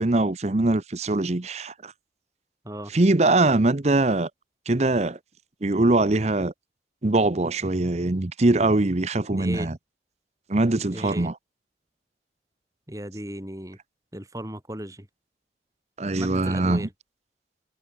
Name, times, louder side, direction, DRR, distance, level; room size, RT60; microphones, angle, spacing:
voice 1, 0.0-1.9 2.9-4.3 4.7-5.2 5.6-6.5 7.0-9.8 10.5-11.3 16.0-16.9, right 2 dB, 40° right, 0.8 m, -22 dB
voice 2, 9.3-9.7 10.9-11.3 12.9-13.8 14.1-15.1 16.2-16.9, right 1 dB, 20° right, 3.8 m, -35 dB
head